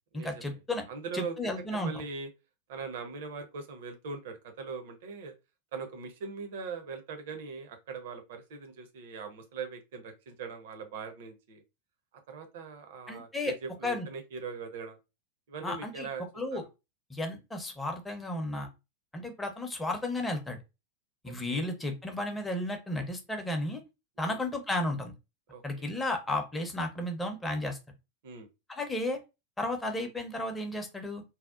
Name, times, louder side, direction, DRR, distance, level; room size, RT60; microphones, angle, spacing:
voice 1, 0.1-0.8 1.1-1.9 13.1-13.5 13.8-14.1 15.6-16.1 16.4-16.6 17.1-18.7 19.1-20.6 21.2-23.8 24.2-25.1 25.6-27.8 28.7-29.2 29.6-31.2, left 1 dB, 10° left, 3 dB, 0.6 m, -33 dB
voice 2, 0.9-2.3 2.7-5.3 5.7-11.6 12.3-15.0 15.5-16.2 16.5-16.7 21.3-21.7 24.2-24.4 25.5-25.9 28.2-28.5, right 5 dB, 55° right, 6 dB, 0.6 m, -41 dB
2.7 x 2.0 x 2.3 m, 0.25 s
figure-of-eight pair, 90°, 0 cm